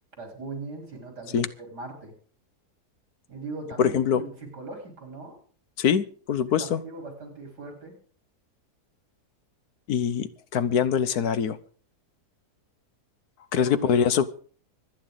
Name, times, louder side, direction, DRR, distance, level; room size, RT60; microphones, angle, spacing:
voice 1, 0.2-2.1 3.3-5.4 6.6-8.0 13.5-13.9, right 3 dB, 80° right, 2 dB, 4.6 m, -40 dB
voice 2, 3.8-4.2 5.8-6.8 9.9-11.6 13.5-14.3, left 8 dB, 70° left, 14 dB, 1.3 m, -23 dB
25.0 x 9.4 x 3.8 m, 0.44 s
omnidirectional pair, 1.7 m